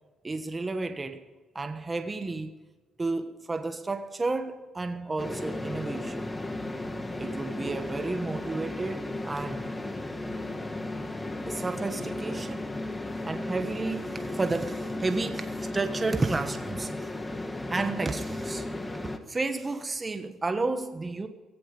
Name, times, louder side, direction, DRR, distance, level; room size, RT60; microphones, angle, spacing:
voice 1, 0.2-1.2 1.5-2.6 3.0-6.3 7.2-9.7 11.5-12.7 13.2-16.9 17.7-18.7 19.3-21.3, right 3 dB, 25° right, 1.2 m, -32 dB
sound 1, 5.2-19.2, left 2 dB, 15° left, 1.7 m, -35 dB
16.5 x 16.0 x 5.3 m
cardioid pair, 90°, 0 cm